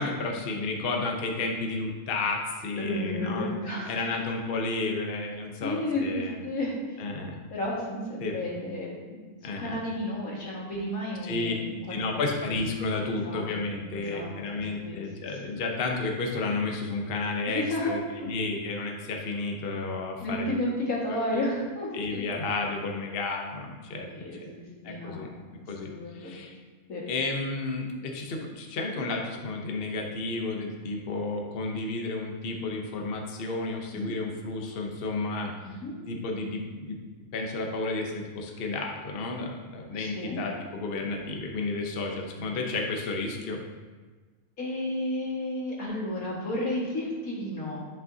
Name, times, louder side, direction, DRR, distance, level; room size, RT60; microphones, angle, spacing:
voice 1, 0.0-3.5 3.9-6.4 7.0-7.4 8.2-8.3 9.4-9.8 11.2-11.5 11.9-18.0 18.2-20.5 21.9-24.5 24.8-25.3 25.7-26.5 27.1-35.8 36.1-37.0 37.3-43.6, left 3 dB, 50° left, 1 dB, 0.9 m, -32 dB
voice 2, 2.8-3.9 5.6-7.0 7.5-12.0 13.2-13.4 13.9-15.0 15.5-15.7 17.5-17.9 18.2-18.3 20.2-22.4 24.1-25.4 25.9-26.4 26.9-27.0 34.1-34.2 35.6-35.9 39.9-40.4 44.6-47.9, left 1 dB, 85° left, -5 dB, 2.3 m, -32 dB
10.5 x 5.5 x 2.7 m, 1.4 s
omnidirectional pair, 1.4 m